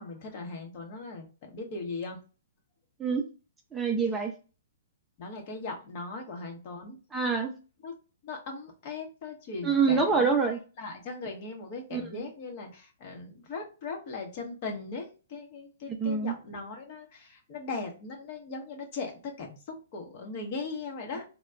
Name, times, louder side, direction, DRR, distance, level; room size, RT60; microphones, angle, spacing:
voice 1, 0.0-2.2 5.2-7.0 7.8-7.9 8.2-10.4 10.8-21.2, left 3 dB, 45° left, 3 dB, 0.9 m, -39 dB
voice 2, 3.7-4.3 7.1-7.5 9.6-10.6 11.9-12.2 15.9-16.4, right 5 dB, 10° right, 2 dB, 0.5 m, -26 dB
4.1 x 2.2 x 2.3 m, 0.35 s
hypercardioid pair, 140°, 0 cm